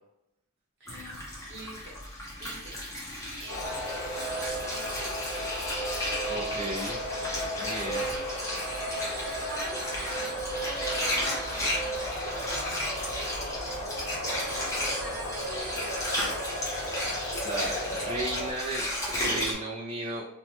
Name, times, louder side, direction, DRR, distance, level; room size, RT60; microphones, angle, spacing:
voice 1, 0.8-1.9 2.4-2.8 3.4-5.6 6.3-6.7 7.4-8.3 9.5-12.5 14.2-16.4, right 1 dB, 50° right, -4 dB, 1.0 m, -44 dB
Water, 0.9-19.5, left 1 dB, 15° left, 0.8 m, -34 dB
sound 1, 3.5-18.5, equal, 65° left, 1.4 m, -35 dB
sound 2, 4.2-7.1 8.4-13.3 14.4-18.6, right 5 dB, 85° right, 0.5 m, -47 dB
voice 2, 6.3-7.0 7.6-8.1 17.4-20.2, right 2 dB, 30° right, -5 dB, 0.4 m, -35 dB
3.0 x 2.2 x 3.0 m, 0.87 s
head